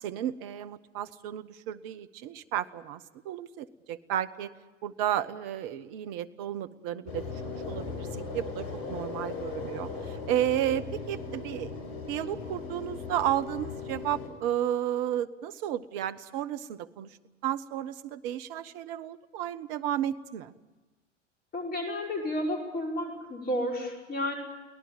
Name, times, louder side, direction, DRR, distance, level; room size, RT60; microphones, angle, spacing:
voice 1, 0.0-4.5 4.8-11.7 12.1-17.1 17.4-20.5, right 11 dB, 45° right, 13 dB, 1.2 m, -33 dB
sound 1, 7.1-14.3, left 4 dB, 55° left, 5.8 m, -38 dB
voice 2, 21.5-24.3, left 1 dB, 25° left, 1 dB, 5.6 m, -31 dB
23.5 x 18.0 x 8.8 m, 1.2 s
figure-of-eight pair, 90°, 37 cm